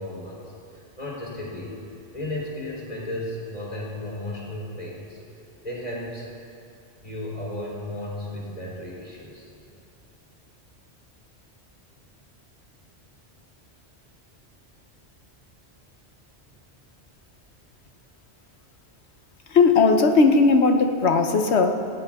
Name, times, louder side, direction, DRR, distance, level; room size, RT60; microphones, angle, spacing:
voice 1, 0.0-1.8 2.1-5.2 5.6-6.3 7.0-9.5, left 1 dB, 35° left, -4 dB, 3.7 m, -34 dB
voice 2, 19.5-21.7, left 4 dB, 75° left, 6 dB, 1.2 m, -17 dB
18.0 x 16.0 x 3.6 m, 2.6 s
omnidirectional pair, 1.1 m